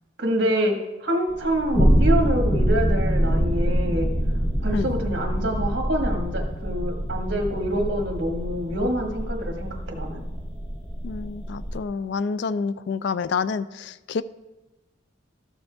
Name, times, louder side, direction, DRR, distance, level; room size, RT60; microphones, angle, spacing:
voice 1, 0.2-0.7 1.0-4.1 4.6-10.3, right 1 dB, 55° right, 2 dB, 1.5 m, -26 dB
sound 1, 1.3-11.8, equal, 25° left, 0.9 m, -25 dB
voice 2, 11.0-14.2, left 5 dB, 60° left, 14 dB, 0.3 m, -28 dB
13.0 x 6.9 x 3.4 m, 1.1 s
head